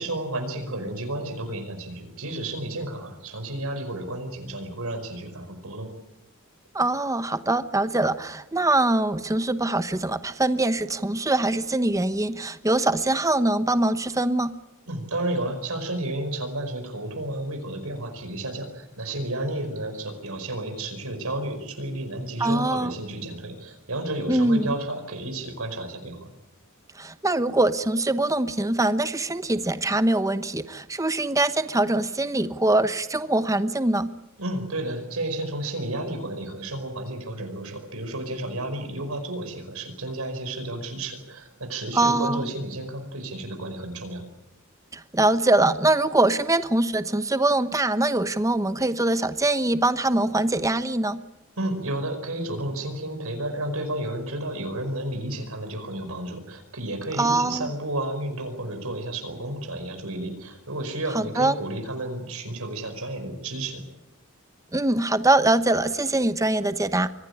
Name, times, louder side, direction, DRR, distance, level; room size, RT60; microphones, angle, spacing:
voice 1, 0.0-5.9 14.9-26.3 34.4-44.2 51.6-63.8, right 1 dB, 75° right, 6 dB, 5.1 m, -32 dB
voice 2, 6.7-14.5 22.4-22.9 24.3-24.7 26.9-34.1 41.9-42.5 44.9-51.2 57.2-57.7 61.1-61.5 64.7-67.1, right 2 dB, 15° right, 11 dB, 1.0 m, -23 dB
24.5 x 16.0 x 9.9 m, 0.94 s
head